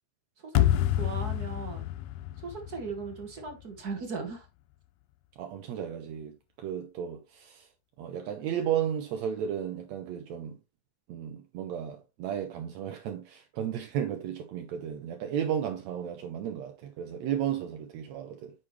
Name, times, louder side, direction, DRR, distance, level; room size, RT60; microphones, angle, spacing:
voice 1, 0.4-1.8 2.4-4.5, right 4 dB, 45° right, 1.4 m, -38 dB
sound 1, 0.6-3.7, left 13 dB, 80° left, 1.7 m, -28 dB
voice 2, 5.4-7.7 8.0-10.6 11.1-18.5, right 9 dB, 75° right, 2.1 m, -34 dB
8.8 x 5.7 x 3.1 m
omnidirectional pair, 3.4 m